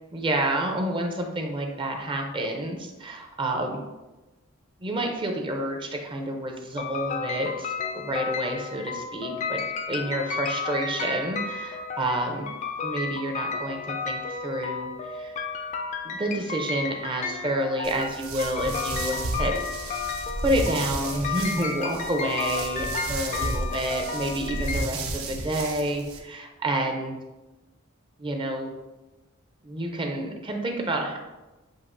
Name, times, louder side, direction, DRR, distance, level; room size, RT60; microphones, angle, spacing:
voice 1, 0.1-3.8 4.8-9.6 9.9-12.5 12.8-15.4 16.0-19.9 20.4-27.2 28.2-28.7 29.6-31.2, right 1 dB, 25° right, 2 dB, 0.5 m, -29 dB
sound 1, 6.8-24.9, left 5 dB, 35° left, 0.3 m, -33 dB
sound 2, 17.8-26.2, right 2 dB, 70° right, 0.7 m, -33 dB
7.0 x 2.7 x 2.6 m, 1.1 s
head